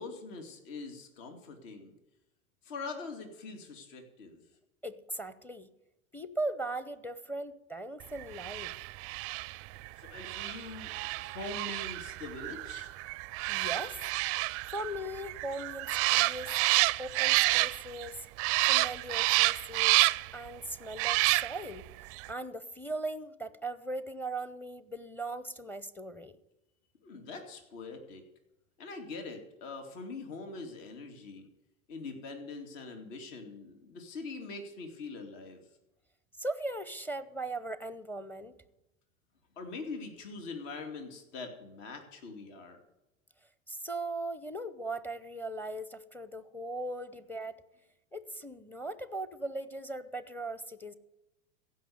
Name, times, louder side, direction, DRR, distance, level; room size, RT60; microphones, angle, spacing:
voice 1, 0.0-1.9 2.6-4.4 10.0-12.9 27.0-28.2 28.8-31.5 31.9-35.6 39.6-42.8, left 3 dB, 60° left, 2.5 m, -43 dB
voice 2, 4.8-5.7 6.1-8.7 13.5-14.0 14.7-16.6 17.0-18.3 18.7-20.1 20.3-21.9 22.3-26.4 36.4-38.6 43.7-47.6 48.1-50.9, right 2 dB, 5° left, 0.7 m, -39 dB
sound 1, 8.3-18.1 18.4-20.4 20.9-21.8 22.1-22.3, right 23 dB, 35° right, 0.4 m, -29 dB
15.5 x 5.8 x 9.3 m
hypercardioid pair, 100°, 41 cm